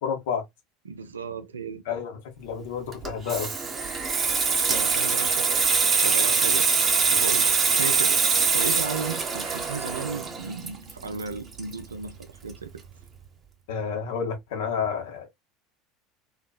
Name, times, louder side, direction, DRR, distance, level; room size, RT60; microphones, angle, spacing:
voice 1, 0.0-0.4 1.9-3.6 13.7-15.3, left 6 dB, 70° left, 0.9 m, -30 dB
voice 2, 0.9-1.8 4.6-5.5 6.0-6.7 7.1-8.2 8.5-12.7, right 5 dB, 90° right, 0.4 m, -35 dB
Water tap faucet / Sink (filling or washing), 2.9-12.2 12.5-12.8, right 5 dB, 35° right, 0.7 m, -24 dB
2.7 x 2.4 x 2.2 m
hypercardioid pair, 75°, 0 cm